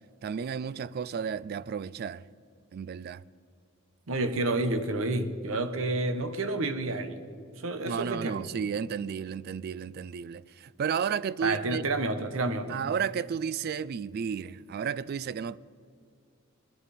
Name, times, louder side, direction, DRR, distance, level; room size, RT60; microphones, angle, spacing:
voice 1, 0.2-2.3 2.7-3.2 7.8-11.8 12.7-15.6, right 7 dB, 50° right, 0.3 m, -33 dB
voice 2, 4.1-7.2 7.6-8.4 11.4-12.8, right 2 dB, 80° right, 1.0 m, -29 dB
21.0 x 10.5 x 4.2 m
head